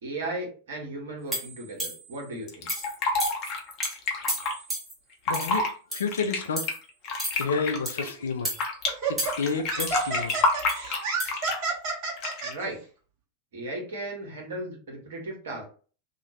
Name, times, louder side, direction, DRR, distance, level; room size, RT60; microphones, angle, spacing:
voice 1, 0.0-2.7 12.4-12.8 13.5-15.6, right 2 dB, 60° right, 1.2 m, -36 dB
sound 1, 1.3-2.1 2.7-2.9 3.2-3.5 3.8-3.9 4.3-4.9 5.3-5.6 5.9-6.2 6.6-6.8 7.2-7.4 7.8-8.1 8.4-8.6 9.2-9.5 9.8-10.8 11.2-11.3, right 1 dB, 15° right, 1.3 m, -33 dB
Fill (with liquid), 2.5-4.5 5.1-5.7 6.1-8.9 9.2-11.7 12.2-12.6, left 3 dB, 40° left, 0.7 m, -28 dB
voice 2, 5.3-5.7 5.9-6.7 7.4-8.5 9.1-10.3, left 5 dB, 65° left, 0.4 m, -30 dB
Laughter, 8.0-8.2 8.9-12.5, right 4 dB, 40° right, 1.3 m, -30 dB
2.8 x 2.4 x 3.0 m
figure-of-eight pair, 90°, 0 cm